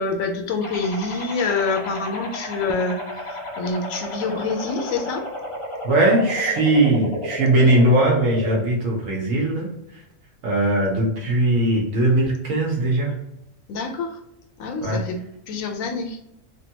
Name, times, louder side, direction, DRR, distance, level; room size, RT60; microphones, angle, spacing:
voice 1, 0.0-3.0 3.3-5.3 13.7-14.2 14.6-15.2 15.5-16.2, left 4 dB, 80° left, 4 dB, 1.0 m, -26 dB
sound 1, 0.6-8.6, left 1 dB, 55° left, 0.3 m, -32 dB
voice 2, 5.8-9.7 10.4-13.1 14.8-15.0, right 1 dB, 70° right, -1 dB, 1.1 m, -19 dB
3.4 x 2.2 x 2.8 m, 0.83 s
omnidirectional pair, 1.4 m